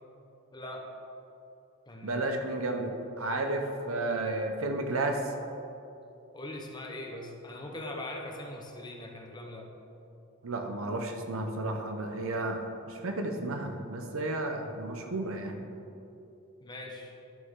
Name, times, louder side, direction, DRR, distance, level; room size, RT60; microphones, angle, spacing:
voice 1, 0.5-0.9 1.9-2.2 6.3-9.7 16.6-17.1, left 1 dB, 20° left, 1 dB, 0.9 m, -41 dB
voice 2, 2.0-2.9 3.2-5.2 10.4-15.6, right 2 dB, 80° right, 4 dB, 0.9 m, -32 dB
11.5 x 6.5 x 3.7 m, 2.8 s
head